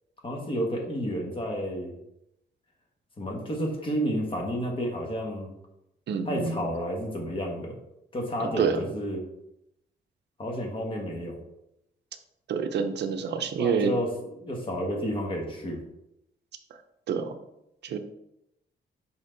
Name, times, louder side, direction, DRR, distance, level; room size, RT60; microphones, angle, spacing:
voice 1, 0.2-1.9 3.2-5.5 6.2-7.8 8.1-9.2 10.4-11.4 13.6-15.8, equal, 30° left, 1 dB, 1.3 m, -31 dB
voice 2, 6.1-6.6 8.4-8.8 12.5-13.9 17.1-17.3 17.8-18.0, right 6 dB, 75° right, 7 dB, 0.7 m, -27 dB
5.7 x 4.4 x 3.9 m, 0.82 s
wide cardioid pair, 145°, 18 cm